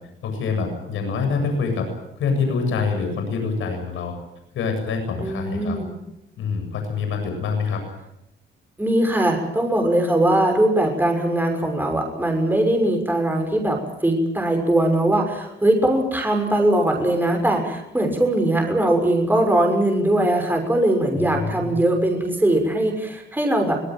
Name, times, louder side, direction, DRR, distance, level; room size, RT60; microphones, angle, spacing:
voice 1, 0.2-1.9 2.2-4.1 4.5-5.8 6.4-7.8 21.2-21.7, left 5 dB, 80° left, 5 dB, 7.8 m, -25 dB
voice 2, 5.2-5.9 8.8-23.8, right 1 dB, 10° right, 3 dB, 6.4 m, -20 dB
25.5 x 18.0 x 9.1 m, 0.81 s
cardioid pair, 90°, 20 cm